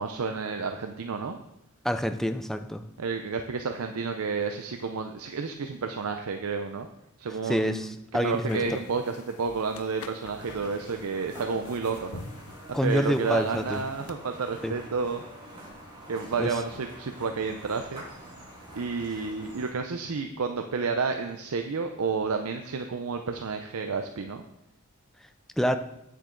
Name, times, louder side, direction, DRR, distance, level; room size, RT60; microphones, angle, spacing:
voice 1, 0.0-1.4 3.0-6.9 7.2-12.2 12.7-15.2 16.1-18.0 18.7-24.4, right 5 dB, 70° right, 6 dB, 0.6 m, -31 dB
voice 2, 1.8-2.8 7.5-8.6 12.7-13.8 14.6-14.7 16.4-16.5 25.6-25.8, equal, ahead, 9 dB, 0.4 m, -27 dB
sound 1, 8.2-14.1, left 4 dB, 70° left, 0.7 m, -45 dB
sound 2, 10.4-19.7, right 1 dB, 25° right, 3.8 m, -46 dB
9.1 x 7.5 x 3.8 m, 0.83 s
head